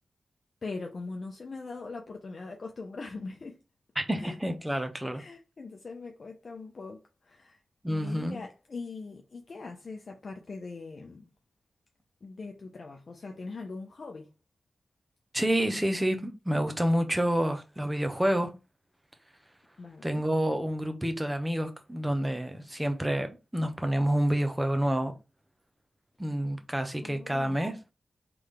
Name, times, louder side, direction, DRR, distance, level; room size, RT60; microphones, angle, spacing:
voice 1, 0.6-3.6 4.2-4.4 5.1-7.6 7.9-11.2 12.2-14.3 19.8-20.3 27.0-27.6, left 3 dB, 60° left, 0.7 m, -41 dB
voice 2, 4.0-5.2 7.8-8.4 15.3-18.5 20.0-25.1 26.2-27.8, equal, 10° right, 1.0 m, -28 dB
3.9 x 3.4 x 3.3 m
cardioid pair, 65°, 0 cm